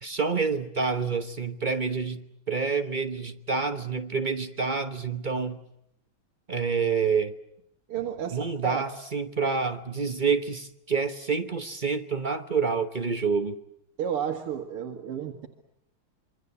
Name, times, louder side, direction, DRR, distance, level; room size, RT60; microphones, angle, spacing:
voice 1, 0.0-5.6 6.5-7.3 8.3-13.6, right 5 dB, 35° right, 8 dB, 0.8 m, -28 dB
voice 2, 7.9-8.8 14.0-15.5, right 8 dB, 85° right, 2 dB, 2.6 m, -32 dB
26.5 x 24.0 x 8.4 m, 0.76 s
omnidirectional pair, 2.4 m